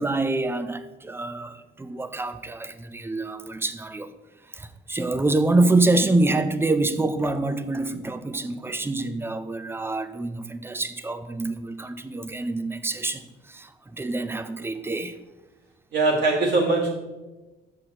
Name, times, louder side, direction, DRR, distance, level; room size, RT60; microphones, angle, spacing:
voice 1, 0.0-4.1 4.5-15.2, right 2 dB, 10° right, 0.4 m, -26 dB
voice 2, 15.9-16.9, right 3 dB, 60° right, 1.8 m, -21 dB
6.6 x 5.9 x 2.9 m
cardioid pair, 90°, 20 cm